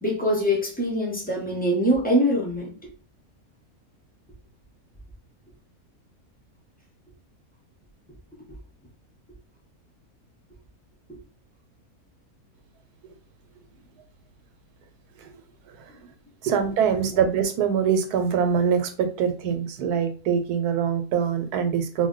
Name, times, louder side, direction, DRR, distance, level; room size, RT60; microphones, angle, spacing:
voice 1, 0.0-2.9 8.5-8.6 11.1-11.2 16.0-16.1, equal, 10° left, -3 dB, 0.4 m, -24 dB
voice 2, 16.4-22.1, right 7 dB, 85° right, 8 dB, 1.1 m, -24 dB
2.6 x 2.1 x 3.7 m, 0.38 s
omnidirectional pair, 1.6 m